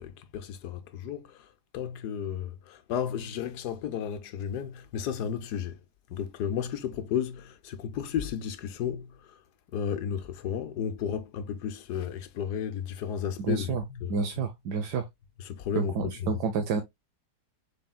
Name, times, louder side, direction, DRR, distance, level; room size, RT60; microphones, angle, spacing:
voice 1, 0.0-1.5 1.7-5.8 6.1-9.4 9.7-14.2 15.4-16.4, left 8 dB, 80° left, 1.3 m, -33 dB
voice 2, 13.4-13.8 14.1-15.1 15.7-16.8, right 5 dB, 85° right, 1.3 m, -29 dB
6.7 x 3.5 x 2.2 m
omnidirectional pair, 1.7 m